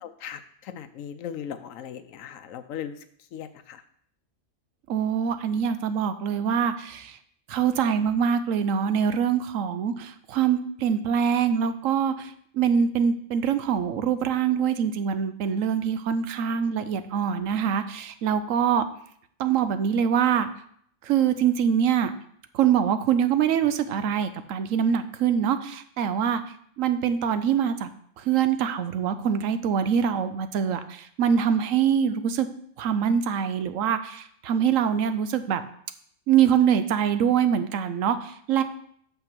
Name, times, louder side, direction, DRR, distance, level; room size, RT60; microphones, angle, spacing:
voice 1, 0.0-3.0 3.3-3.8, left 9 dB, 85° left, 11 dB, 1.1 m, -38 dB
voice 2, 4.9-7.2 7.5-18.8 19.4-20.5 21.0-22.1 22.5-26.4 26.8-27.9 28.2-32.5 32.8-35.6 36.3-38.6, right 8 dB, 85° right, 11 dB, 1.1 m, -24 dB
6.8 x 5.5 x 6.0 m, 0.64 s
omnidirectional pair, 1.3 m